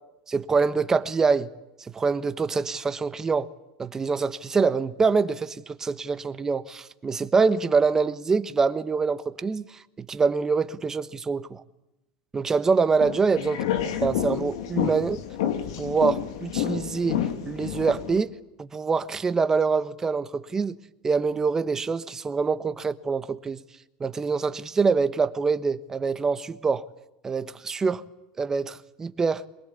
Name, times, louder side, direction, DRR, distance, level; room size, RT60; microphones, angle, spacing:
voice 1, 0.3-1.5 1.8-3.5 3.8-11.6 12.3-13.6 14.0-15.2 15.8-20.8 21.0-23.6 24.0-26.9 27.2-28.0 28.4-29.5, right 4 dB, 20° right, 1.2 m, -25 dB
sound 1, 12.9-18.2, left 10 dB, 85° left, 2.5 m, -29 dB
23.5 x 21.5 x 8.2 m
supercardioid pair, 125°, 3 cm